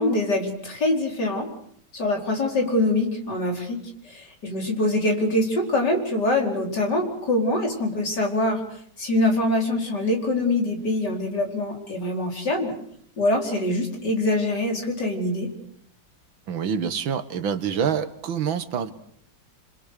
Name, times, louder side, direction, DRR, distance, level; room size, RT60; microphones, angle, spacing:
voice 1, 0.0-1.5 1.9-3.8 4.0-8.6 9.0-12.7 13.2-15.5, left 1 dB, 55° left, 2 dB, 5.3 m, -24 dB
voice 2, 16.5-18.9, right 7 dB, 80° right, 11 dB, 2.2 m, -26 dB
27.5 x 26.0 x 6.7 m, 0.67 s
omnidirectional pair, 2.1 m